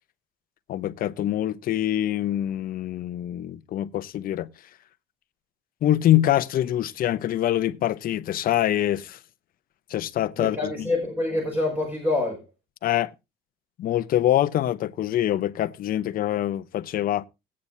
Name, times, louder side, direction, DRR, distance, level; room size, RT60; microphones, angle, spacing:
voice 1, 0.7-4.5 5.8-9.2 9.9-10.9 12.8-13.1 13.8-17.3, left 12 dB, 60° left, 0.8 m, -24 dB
voice 2, 10.4-12.4, left 2 dB, 10° right, 5.6 m, -26 dB
19.0 x 8.7 x 2.7 m
cardioid pair, 110°, 17 cm